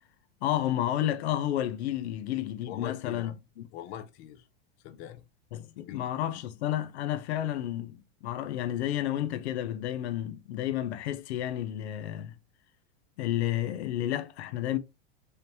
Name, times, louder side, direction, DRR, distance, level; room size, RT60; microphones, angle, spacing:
voice 1, 0.4-3.6 5.5-12.3 13.2-14.8, left 12 dB, 80° left, 0.7 m, -31 dB
voice 2, 2.7-3.3 3.7-4.4 4.8-5.2 5.9-6.1, left 11 dB, 35° left, 0.5 m, -42 dB
5.0 x 2.7 x 2.9 m
supercardioid pair, 150°, 32 cm